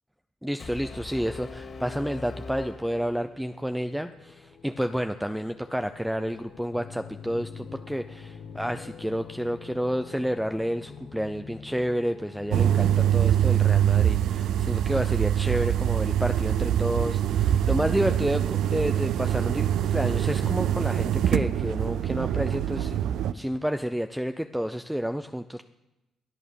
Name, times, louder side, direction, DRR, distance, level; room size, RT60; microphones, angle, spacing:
voice 1, 0.4-23.0 23.3-25.6, equal, 5° right, 8 dB, 0.6 m, -30 dB
Brass instrument, 0.6-3.7, left 3 dB, 45° left, 2.4 m, -41 dB
sound 1, 3.0-13.3, left 6 dB, 65° left, 1.5 m, -46 dB
sound 2, 12.5-23.3, right 10 dB, 80° right, 0.5 m, -24 dB
22.0 x 8.7 x 6.9 m, 1.0 s
cardioid pair, 90°, 0 cm